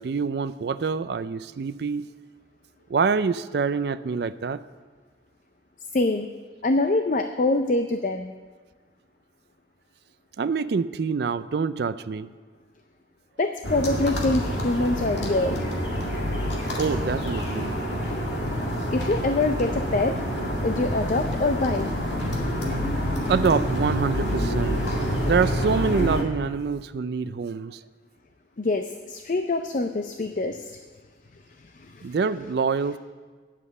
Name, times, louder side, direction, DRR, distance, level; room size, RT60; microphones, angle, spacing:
voice 1, 0.0-2.1 2.9-4.6 10.4-12.3 16.8-17.7 23.3-24.9 25.3-27.8 32.0-33.0, right 5 dB, 60° right, 13 dB, 0.4 m, -26 dB
voice 2, 5.9-6.3 6.6-8.3 13.4-15.6 18.9-20.2 20.6-21.9 28.6-30.8 31.8-32.1, left 2 dB, 45° left, 7 dB, 0.5 m, -25 dB
sound 1, 13.6-26.2, equal, 70° left, 2.1 m, -27 dB
10.0 x 7.4 x 8.3 m, 1.5 s
head